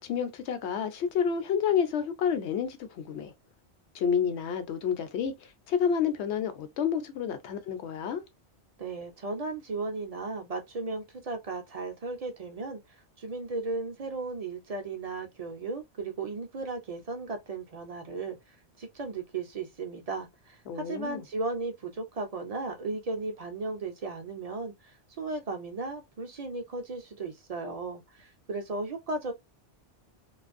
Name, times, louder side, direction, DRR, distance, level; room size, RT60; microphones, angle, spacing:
voice 1, 0.0-3.3 3.9-5.3 5.7-8.2 20.7-21.2, left 7 dB, 80° left, 0.9 m, -29 dB
voice 2, 8.8-29.3, right 3 dB, 55° right, 0.4 m, -36 dB
2.5 x 2.3 x 2.4 m
omnidirectional pair, 1.1 m